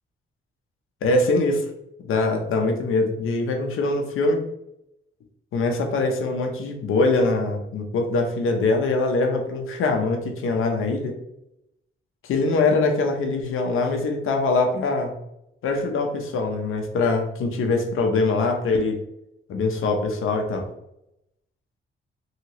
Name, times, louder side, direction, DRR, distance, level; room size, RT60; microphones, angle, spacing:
voice 1, 1.0-1.6 2.0-4.4 5.5-11.2 12.2-15.1 15.6-19.0 19.5-20.6, left 3 dB, 80° left, 3 dB, 0.6 m, -23 dB
2.8 x 2.8 x 2.8 m, 0.82 s
cardioid pair, 80°, 21 cm